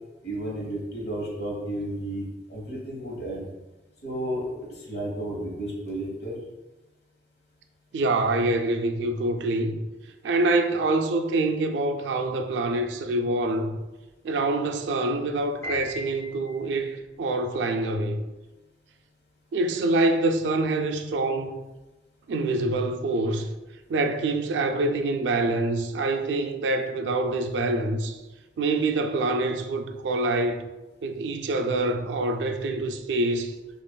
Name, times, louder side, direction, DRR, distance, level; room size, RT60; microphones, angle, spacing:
voice 1, 0.2-3.5 4.0-4.5 4.9-6.3, right 1 dB, 70° left, 1.0 m, -32 dB
voice 2, 7.9-9.8 10.2-13.8 14.2-18.2 19.5-21.6 22.3-23.5 23.9-28.2 28.6-30.7 31.0-33.5, right 2 dB, 90° right, 0.4 m, -25 dB
Piano, 15.6-16.9, equal, 15° left, 1.2 m, -37 dB
5.2 x 2.4 x 2.2 m
head